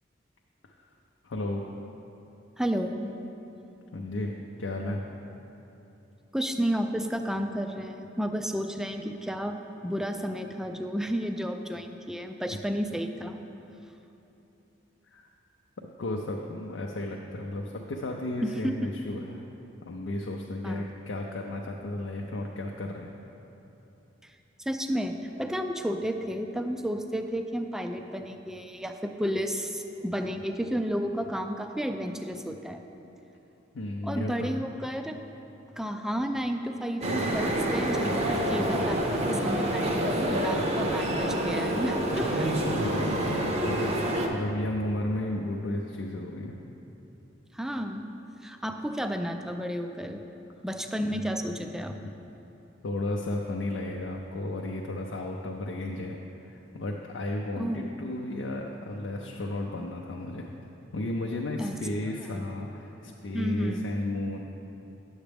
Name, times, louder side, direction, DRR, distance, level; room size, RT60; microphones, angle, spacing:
voice 1, 1.2-1.7 3.9-5.0 15.1-15.3 15.8-19.5 19.8-23.1 33.7-34.7 42.7-44.0 44.3-46.6 51.0-51.3 52.8-56.2 56.5-60.5 60.9-64.4, left 1 dB, 80° left, 0 dB, 0.5 m, -33 dB
voice 2, 2.6-3.1 6.3-13.4 18.4-18.9 20.6-20.9 24.7-32.8 34.0-35.2 35.8-42.6 47.5-48.1 48.4-50.2 50.6-52.0 57.6-57.9 61.6-61.8 62.2-62.4 63.3-63.9, equal, 5° right, 5 dB, 0.3 m, -32 dB
sound 1, 37.0-44.3, right 1 dB, 35° right, 0.7 m, -27 dB
10.0 x 7.2 x 3.4 m, 3.0 s
head